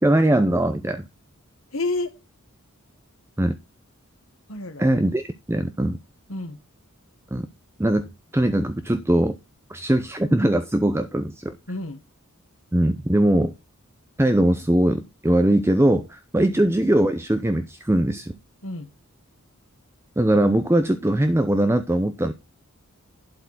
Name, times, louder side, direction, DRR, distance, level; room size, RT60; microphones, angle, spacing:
voice 1, 0.0-1.1 3.4-3.6 4.8-5.2 5.5-6.0 7.3-7.5 7.8-9.4 9.7-11.6 12.7-13.5 14.2-18.4 20.2-22.3, right 1 dB, 10° right, 0.6 m, -21 dB
voice 2, 1.7-2.1 4.5-4.9 6.3-6.6 11.7-12.0 16.4-16.6 18.6-18.9, left 2 dB, 65° left, 1.7 m, -30 dB
11.5 x 4.6 x 6.0 m
head